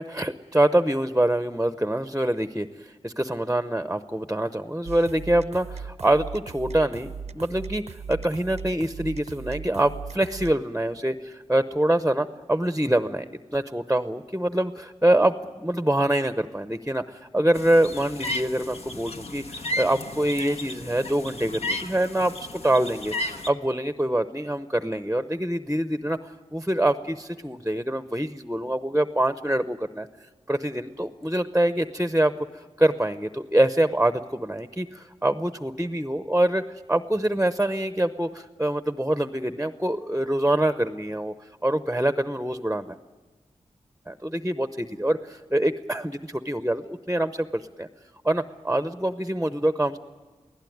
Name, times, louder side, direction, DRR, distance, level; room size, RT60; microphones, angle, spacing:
voice 1, 0.0-2.7 3.0-13.2 13.5-26.2 26.5-30.1 30.5-32.3 32.8-36.6 36.9-41.3 41.6-43.0 44.1-47.9 48.2-50.0, right 1 dB, 10° right, 10 dB, 0.8 m, -25 dB
sound 1, 4.9-10.5, right 6 dB, 70° right, 0.6 m, -38 dB
sound 2, 17.5-23.5, left 1 dB, 60° left, 1.4 m, -34 dB
24.0 x 16.5 x 9.4 m, 1.4 s
wide cardioid pair, 65°, 12 cm